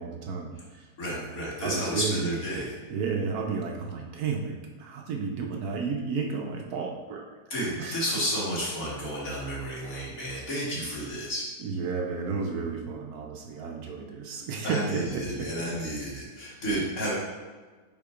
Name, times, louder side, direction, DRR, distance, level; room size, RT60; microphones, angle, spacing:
voice 1, 0.0-2.3 2.9-7.2 7.8-8.0 11.6-15.5 16.4-16.6, right 5 dB, 70° right, 1 dB, 1.1 m, -32 dB
voice 2, 1.0-2.7 7.5-11.4 14.6-17.1, equal, 55° left, -6 dB, 2.1 m, -31 dB
5.8 x 3.8 x 4.7 m, 1.4 s
omnidirectional pair, 1.8 m